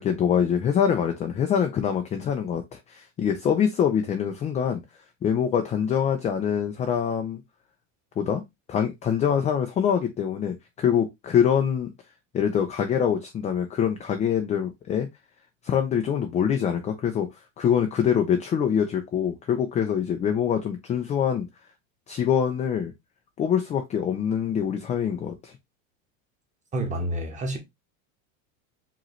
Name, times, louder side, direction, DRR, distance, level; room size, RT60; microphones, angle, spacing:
voice 1, 0.0-4.8 5.2-7.4 8.2-8.4 8.7-11.9 12.3-15.1 15.6-17.3 17.6-21.5 22.1-22.9 23.4-25.5, left 8 dB, 20° left, 0.3 m, -24 dB
voice 2, 26.7-27.6, right 1 dB, 20° right, 1.2 m, -28 dB
4.9 x 3.0 x 3.0 m
supercardioid pair, 140°, 40 cm